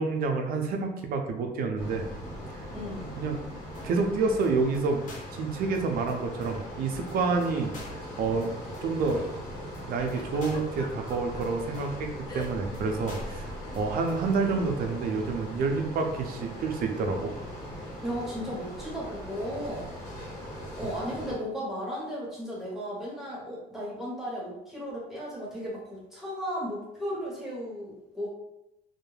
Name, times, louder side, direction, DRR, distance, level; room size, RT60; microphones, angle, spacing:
voice 1, 0.0-2.1 3.2-3.4 3.8-5.0 5.3-7.7 8.2-8.6 8.8-9.3 9.9-17.3, right 4 dB, 60° right, 3 dB, 0.5 m, -28 dB
sound 1, 1.8-21.4, equal, 80° left, 0.9 m, -40 dB
voice 2, 2.7-3.2 18.0-20.2 20.8-28.3, equal, ahead, -6 dB, 1.0 m, -35 dB
sound 2, 3.7-4.1 4.4-4.5 4.7-4.8 5.1-5.4 5.7-5.8 6.1-6.2 6.4-6.7 7.1-7.2 7.4-7.5 7.7-8.1 8.4-8.5 8.7-8.8 9.1-9.4 9.7-9.8 10.1-10.2 10.4-10.7 11.1-11.2 11.4-11.5 11.7-12.1 12.4-12.5 12.7-12.8 13.1-13.4 13.7-13.8 14.1-14.2, left 1 dB, 45° left, 0.8 m, -46 dB
Giggle, 10.1-11.4 12.3-12.8 13.0-13.3 14.2-14.4, left 3 dB, 25° left, 0.4 m, -44 dB
2.3 x 2.1 x 3.1 m, 0.88 s
cardioid pair, 110°, 17 cm